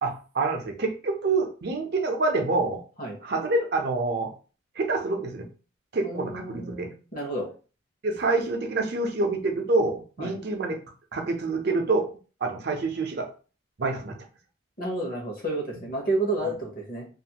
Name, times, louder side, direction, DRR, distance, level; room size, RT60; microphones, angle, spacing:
voice 1, 0.0-2.8 3.2-4.3 4.8-5.5 5.9-6.9 8.0-10.8 11.1-12.1 12.4-13.3 13.8-14.2, right 3 dB, 50° right, 3 dB, 0.5 m, -26 dB
voice 2, 6.0-7.5 10.2-10.3 14.8-17.1, right 2 dB, 40° left, 1 dB, 0.9 m, -30 dB
2.5 x 2.4 x 2.8 m, 0.36 s
head